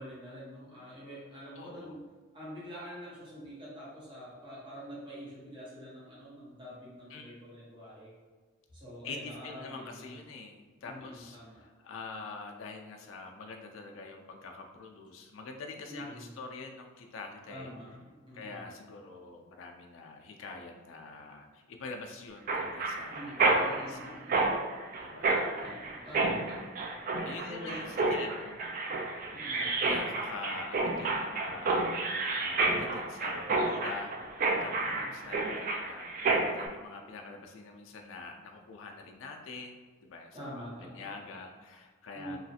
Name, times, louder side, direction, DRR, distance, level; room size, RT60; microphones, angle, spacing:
voice 1, 0.0-2.0 2.3-8.1 8.7-10.2 10.8-11.6 15.9-16.3 17.5-18.6 23.1-24.6 25.6-26.8 27.4-28.0 29.3-29.8 34.8-35.2 40.3-41.1 42.1-42.4, equal, 25° right, -8 dB, 1.0 m, -46 dB
voice 2, 1.6-2.0 7.1-7.3 9.0-17.7 18.3-24.2 25.0-25.4 27.1-28.6 29.8-34.2 34.6-42.4, left 4 dB, 70° left, 3 dB, 0.4 m, -45 dB
Mechanisms, 22.5-36.7, right 3 dB, 45° right, 0.4 m, -30 dB
3.1 x 2.4 x 2.7 m, 1.4 s
head